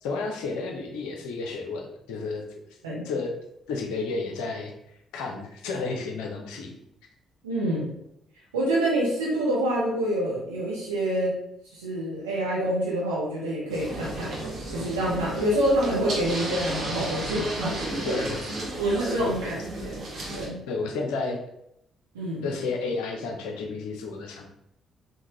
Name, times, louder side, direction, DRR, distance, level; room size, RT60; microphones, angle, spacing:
voice 1, 0.0-2.5 3.0-3.3 3.7-4.7 5.1-6.7 17.9-18.4 19.2-19.4 20.7-21.4 22.4-24.5, left 3 dB, 70° left, 2 dB, 0.5 m, -31 dB
voice 2, 7.4-7.9 8.5-11.3 11.7-14.4 14.7-17.8 18.1-18.2 18.8-19.6 19.8-20.0 20.3-20.6 22.1-22.5, right 1 dB, 80° right, -5 dB, 0.7 m, -27 dB
sound 1, 13.7-20.5, right 1 dB, 55° right, 0.9 m, -33 dB
3.5 x 2.1 x 2.9 m, 0.78 s
figure-of-eight pair, 45°, 0 cm